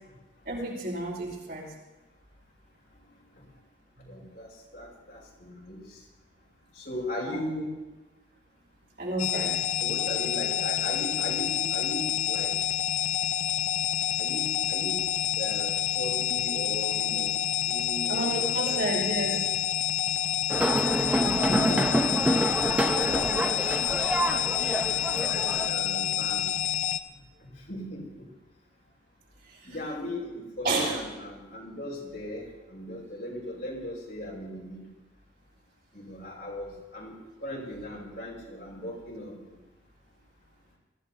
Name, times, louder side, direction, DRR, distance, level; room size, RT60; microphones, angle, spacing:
voice 1, 0.5-1.7 4.0-4.1 7.3-7.4 9.0-9.6 18.1-19.4 29.4-29.7 30.6-31.0, right 2 dB, 55° right, -3 dB, 5.4 m, -31 dB
voice 2, 4.1-4.5 4.7-5.8 6.8-7.7 9.8-12.5 14.2-15.0 15.4-17.3 17.6-18.8 19.3-19.4 21.2-22.1 22.6-23.4 23.9-24.0 24.3-24.5 25.1-26.5 27.7-28.0 29.7-32.4 32.7-34.9 35.9-37.2 37.4-39.4, left 1 dB, 55° left, -4 dB, 5.9 m, -37 dB
sound 1, 9.2-27.0, left 11 dB, 40° left, 0.5 m, -28 dB
sound 2, 20.5-25.7, right 1 dB, 5° right, 0.7 m, -27 dB
22.5 x 16.0 x 2.9 m, 1.1 s
head